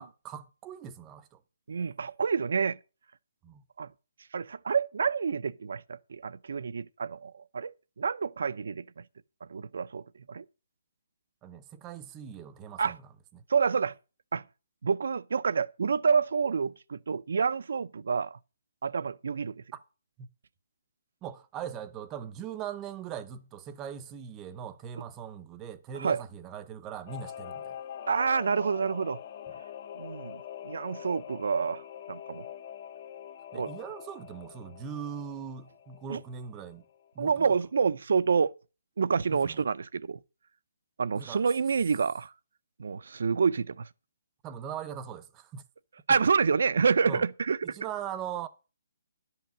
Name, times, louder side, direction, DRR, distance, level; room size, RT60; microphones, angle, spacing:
voice 1, 0.0-1.4 3.4-3.6 11.4-13.0 13.3-13.4 20.2-20.3 21.2-27.8 33.5-36.8 37.1-37.5 39.3-39.6 41.1-41.4 44.4-45.6 47.0-47.2 47.6-48.5, right 8 dB, 15° right, 0.6 m, -40 dB
voice 2, 1.7-2.8 3.8-3.9 4.3-9.0 9.5-10.0 10.3-10.4 12.8-13.0 13.5-14.0 14.3-14.4 14.8-18.4 18.8-19.5 26.0-26.2 28.1-29.2 30.0-32.5 33.5-33.7 36.1-36.2 37.2-38.5 39.0-40.2 41.0-42.3 42.8-43.9 46.1-47.8, right 5 dB, 60° right, 0.6 m, -28 dB
Singing / Musical instrument, 27.1-37.1 37.4-37.5, left 10 dB, 30° left, 0.7 m, -44 dB
11.5 x 5.8 x 7.3 m
hypercardioid pair, 175°, 0 cm